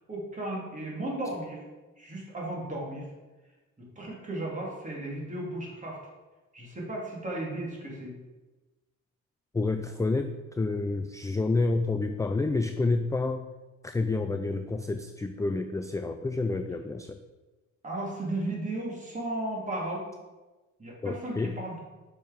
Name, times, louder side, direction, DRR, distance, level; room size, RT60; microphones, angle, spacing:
voice 1, 0.1-1.6 2.0-3.1 3.8-6.0 6.5-8.1 17.8-20.0 20.8-21.8, right 1 dB, 25° right, -3 dB, 2.7 m, -35 dB
voice 2, 9.5-13.4 13.8-17.2 21.0-21.6, left 3 dB, 10° left, 8 dB, 0.4 m, -29 dB
7.1 x 5.1 x 5.1 m, 1.2 s
cardioid pair, 90°, 30 cm